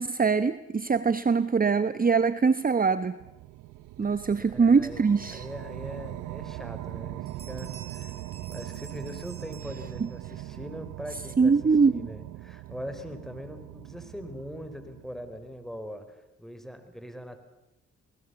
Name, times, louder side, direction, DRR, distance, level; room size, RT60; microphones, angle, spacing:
voice 1, 0.0-3.2 4.0-5.5 10.0-10.1 11.4-12.1, right 5 dB, 30° right, 14 dB, 0.9 m, -23 dB
sound 1, 3.2-15.7, right 16 dB, 85° right, 0.8 m, -41 dB
voice 2, 4.4-8.2 8.5-17.4, equal, ahead, 8 dB, 4.7 m, -42 dB
Bell, 7.3-10.4, right 5 dB, 50° right, 4.5 m, -50 dB
26.0 x 19.5 x 7.0 m, 0.93 s
supercardioid pair, 55°, 29 cm